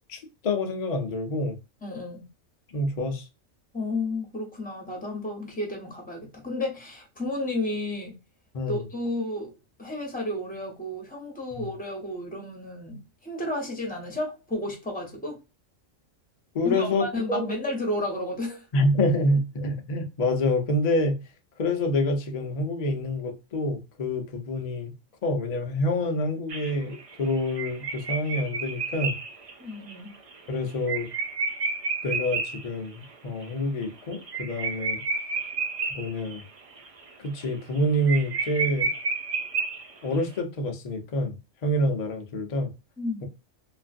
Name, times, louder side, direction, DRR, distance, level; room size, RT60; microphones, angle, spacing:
voice 1, 0.1-1.5 2.7-3.3 8.5-8.8 11.5-11.7 16.5-17.5 18.7-21.2 21.6-24.9 25.2-29.2 30.5-31.1 32.0-35.0 35.9-36.4 37.2-38.9 40.0-41.3 41.6-42.7, left 1 dB, 45° left, 0.5 m, -27 dB
voice 2, 1.8-2.3 3.7-8.1 8.7-9.5 9.8-15.4 16.6-18.7 29.6-30.1 43.0-43.3, left 1 dB, 5° left, 1.0 m, -32 dB
sound 1, 26.5-32.7 33.0-33.1 33.4-33.5 33.8-36.4 36.8-37.1 37.4-37.5 37.8-37.9 38.1-40.2, right 4 dB, 50° right, 0.4 m, -31 dB
3.1 x 2.4 x 2.4 m
omnidirectional pair, 1.3 m